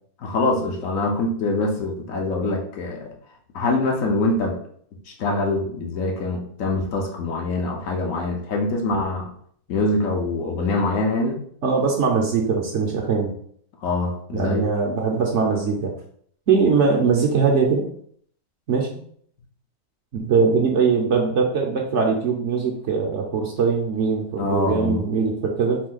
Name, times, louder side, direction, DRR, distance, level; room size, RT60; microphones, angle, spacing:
voice 1, 0.2-3.1 3.5-4.6 5.1-9.3 9.7-11.4 13.8-14.6 24.4-25.0, left 2 dB, 65° left, 1 dB, 1.1 m, -24 dB
voice 2, 11.6-13.3 14.3-15.9 16.5-17.8 18.7-19.0 20.1-25.8, right 5 dB, 60° right, 0 dB, 0.8 m, -21 dB
4.2 x 2.7 x 3.9 m, 0.62 s
omnidirectional pair, 1.6 m